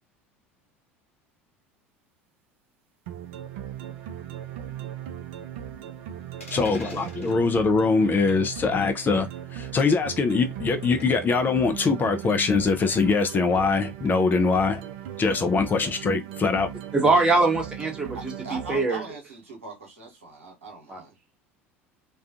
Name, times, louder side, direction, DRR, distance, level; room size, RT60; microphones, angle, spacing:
sound 1, 3.1-18.9, right 10 dB, 60° right, 0.3 m, -38 dB
sound 2, 6.4-7.4 9.0-9.3 11.0-11.3, left 2 dB, 85° left, 0.8 m, -44 dB
voice 1, 6.5-14.8 15.2-16.7, left 4 dB, 25° left, 0.5 m, -23 dB
voice 2, 16.9-19.0 20.9-21.0, right 3 dB, 15° right, 1.0 m, -23 dB
voice 3, 18.4-21.2, right 3 dB, 80° right, 0.9 m, -40 dB
2.4 x 2.3 x 2.4 m
figure-of-eight pair, 70°, 7 cm